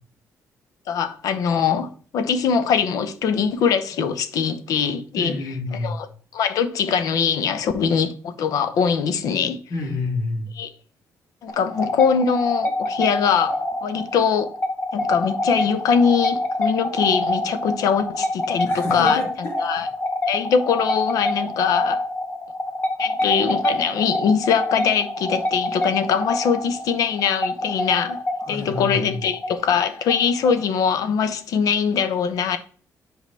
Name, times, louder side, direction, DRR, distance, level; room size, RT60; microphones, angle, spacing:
voice 1, 0.9-5.3 5.8-6.1 6.3-9.6 10.6-10.7 11.4-14.5 14.9-19.2 19.6-19.9 20.3-22.0 23.0-28.2 28.5-32.6, left 6 dB, 75° left, 0.8 m, -22 dB
voice 2, 5.2-6.0 9.7-10.5 18.6-19.8 28.4-29.2, left 2 dB, 45° left, 2.8 m, -29 dB
sound 1, 11.5-30.9, left 1 dB, 25° left, 1.0 m, -26 dB
7.6 x 4.9 x 3.4 m
cardioid pair, 150°, 6 cm